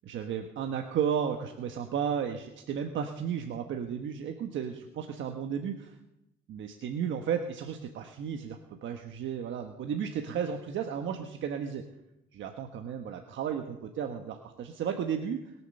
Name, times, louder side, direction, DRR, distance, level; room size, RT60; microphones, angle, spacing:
voice 1, 0.0-5.9 6.5-11.8 12.3-15.5, right 8 dB, 75° right, 5 dB, 1.3 m, -33 dB
21.5 x 7.7 x 6.7 m, 0.85 s
cardioid pair, 90°, 20 cm